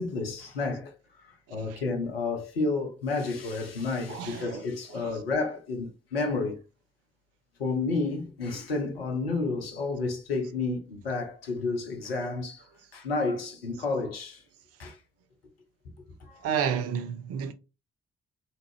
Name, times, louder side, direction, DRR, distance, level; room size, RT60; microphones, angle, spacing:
voice 1, 0.0-6.6 7.6-12.6 12.9-14.4 14.8-15.0 16.2-16.5, left 3 dB, 80° left, 0.7 m, -31 dB
voice 2, 1.5-1.8 4.1-5.2 16.4-17.5, right 8 dB, 55° right, 0.6 m, -32 dB
3.5 x 2.7 x 3.1 m
figure-of-eight pair, 40°, 29 cm